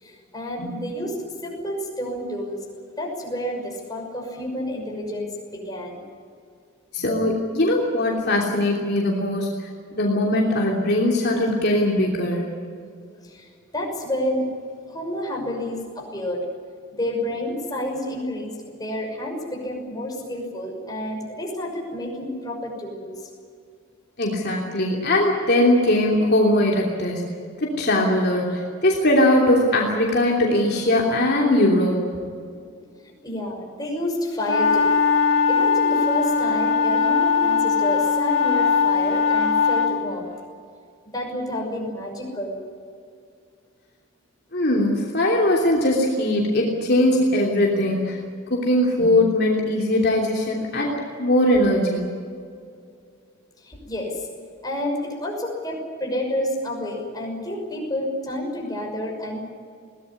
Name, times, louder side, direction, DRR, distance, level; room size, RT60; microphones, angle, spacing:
voice 1, 0.0-1.2 1.4-2.6 3.0-6.0 13.2-13.5 13.7-14.4 14.9-16.4 17.0-23.1 33.2-34.9 35.5-40.3 41.1-42.6 53.6-54.2 54.6-59.5, left 1 dB, 20° left, 0 dB, 6.1 m, -29 dB
voice 2, 6.9-12.5 24.2-27.2 27.6-32.0 32.2-32.4 44.5-48.2 48.5-50.9 51.2-52.1, left 1 dB, 50° left, -1 dB, 3.1 m, -20 dB
sound 1, 34.4-40.0, left 5 dB, 85° left, 3.4 m, -20 dB
22.0 x 18.5 x 9.8 m, 2.3 s
head